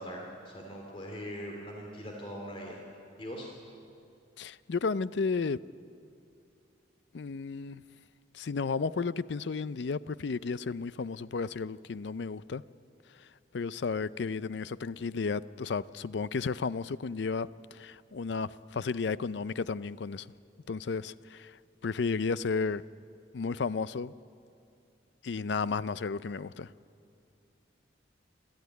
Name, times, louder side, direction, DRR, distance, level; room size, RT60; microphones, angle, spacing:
voice 1, 0.0-2.8 3.2-3.5, equal, 30° left, 0 dB, 2.6 m, -41 dB
voice 2, 4.4-5.6 7.1-7.8 8.3-12.6 13.5-20.3 20.7-21.6 21.8-22.8 23.3-24.1 25.2-26.7, left 4 dB, 65° left, 17 dB, 0.5 m, -33 dB
27.5 x 13.0 x 9.4 m, 2.5 s
head